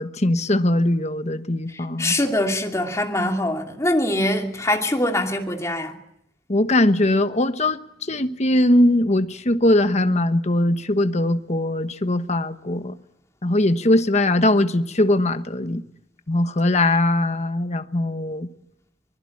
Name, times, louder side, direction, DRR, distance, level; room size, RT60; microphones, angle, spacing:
voice 1, 0.0-2.1 6.5-7.8 8.1-12.9 13.4-15.8 16.3-18.5, left 1 dB, 35° left, 1.2 m, -20 dB
voice 2, 2.0-6.0, left 1 dB, 15° left, 2.7 m, -23 dB
24.5 x 21.0 x 8.7 m
head